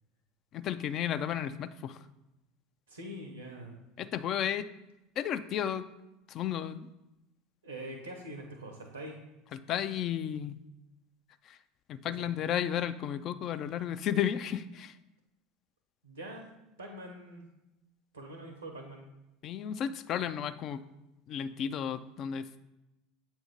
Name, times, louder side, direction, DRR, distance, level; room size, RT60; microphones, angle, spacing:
voice 1, 0.5-2.0 4.0-4.7 5.2-5.9 6.3-6.8 9.5-10.6 11.5-11.6 11.9-14.9 19.4-20.8 21.3-22.5, left 9 dB, 45° left, 12 dB, 0.3 m, -33 dB
voice 2, 2.9-3.7 7.6-9.2 12.2-12.3 16.0-16.4 16.8-17.4 18.1-19.1, right 1 dB, 90° right, 2 dB, 0.7 m, -44 dB
7.3 x 2.6 x 5.2 m, 0.94 s
figure-of-eight pair, 75°, 0 cm